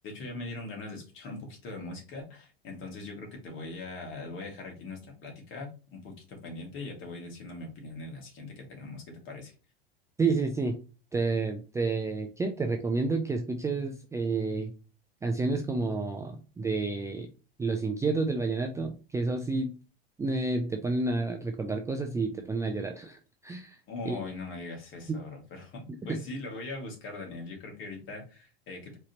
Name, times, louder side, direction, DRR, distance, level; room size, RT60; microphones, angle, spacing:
voice 1, 0.0-9.5 23.9-29.0, left 2 dB, 40° left, 1 dB, 2.1 m, -41 dB
voice 2, 10.2-10.8 11.1-14.7 15.2-17.3 17.6-19.7 20.2-23.8 24.0-24.2 25.1-25.2 26.1-26.2, right 3 dB, 10° right, 4 dB, 0.5 m, -30 dB
4.8 x 3.3 x 2.9 m, 0.33 s
figure-of-eight pair, 85°, 30 cm